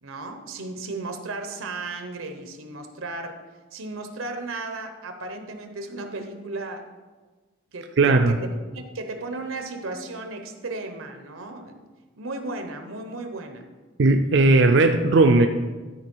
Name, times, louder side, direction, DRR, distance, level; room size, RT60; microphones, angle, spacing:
voice 1, 0.0-3.4 3.7-6.9 7.7-8.5 8.7-11.8 12.2-13.7, right 2 dB, 90° right, 6 dB, 1.0 m, -35 dB
voice 2, 8.0-8.4 14.0-15.5, right 3 dB, 60° right, 5 dB, 0.4 m, -17 dB
12.5 x 4.7 x 4.6 m, 1.3 s
head